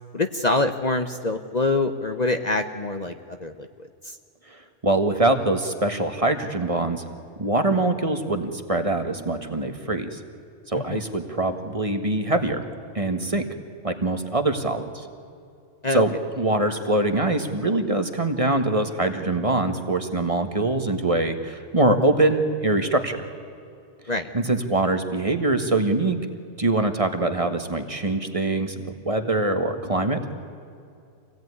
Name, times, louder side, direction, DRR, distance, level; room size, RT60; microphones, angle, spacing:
voice 1, 0.1-4.2 10.7-11.0 15.8-16.0 24.1-24.3, left 2 dB, 40° left, 7 dB, 1.0 m, -25 dB
voice 2, 4.8-7.0 7.4-10.2 10.7-12.6 12.9-13.4 13.8-15.1 15.9-23.3 24.3-26.2 26.6-30.2, right 2 dB, 30° right, 7 dB, 1.5 m, -23 dB
26.0 x 17.5 x 9.6 m, 2.5 s
omnidirectional pair, 1.2 m